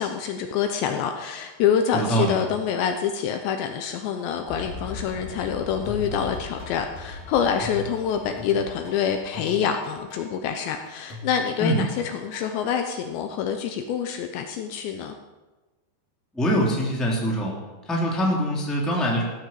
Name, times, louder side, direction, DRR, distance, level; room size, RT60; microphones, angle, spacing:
voice 1, 0.0-15.2, left 8 dB, 75° left, 6 dB, 2.8 m, -26 dB
voice 2, 1.9-2.4 11.6-11.8 16.3-17.5 17.8-19.2, equal, ahead, -2 dB, 1.9 m, -23 dB
sound 1, 4.5-9.2, left 3 dB, 20° left, 2.5 m, -39 dB
sound 2, 5.8-12.7, left 3 dB, 40° left, 3.2 m, -40 dB
16.0 x 9.2 x 7.6 m, 1.2 s
omnidirectional pair, 5.6 m